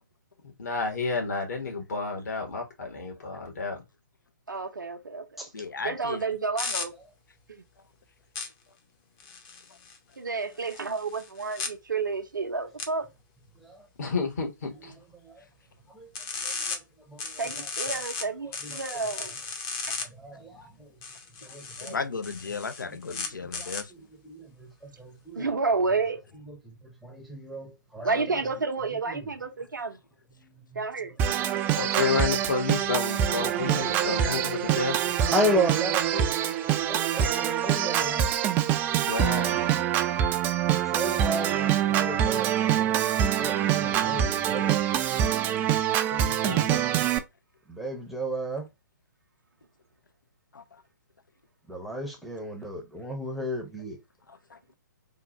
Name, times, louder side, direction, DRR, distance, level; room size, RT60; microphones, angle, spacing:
voice 1, 0.6-3.8 14.0-15.0 31.8-35.2 39.1-39.6 46.1-46.8, left 4 dB, 55° left, 1.7 m, -31 dB
voice 2, 4.5-5.4 5.8-6.9 7.5-7.6 10.2-13.1 17.4-19.3 19.9-20.0 25.3-26.2 28.0-30.0 30.7-31.1, right 4 dB, 75° right, 0.7 m, -30 dB
voice 3, 5.5-6.3 21.4-21.5 21.8-23.9 28.0-28.3 31.4-32.3 34.0-34.8 40.8-40.9 50.5-50.8 54.3-54.6, left 5 dB, 80° left, 0.6 m, -36 dB
sound 1, 6.6-6.8 8.4-8.5 9.2-10.0 10.6-11.7 12.8-12.9 16.1-16.8 17.2-18.2 18.5-20.0 21.0-21.9 22.2-23.8, left 5 dB, 30° left, 0.8 m, -35 dB
voice 4, 16.4-16.8 17.1-17.7 18.4-18.8 20.0-20.9 21.5-21.9 22.9-25.5 26.5-28.1 29.1-29.3 30.7-30.8 35.3-36.3 36.8-38.3 40.9-44.8 47.7-48.7 51.7-54.0, equal, ahead, 0.7 m, -34 dB
Organ, 31.2-47.2, right 10 dB, 20° right, 0.3 m, -25 dB
3.7 x 2.4 x 4.0 m
figure-of-eight pair, 125°, 10 cm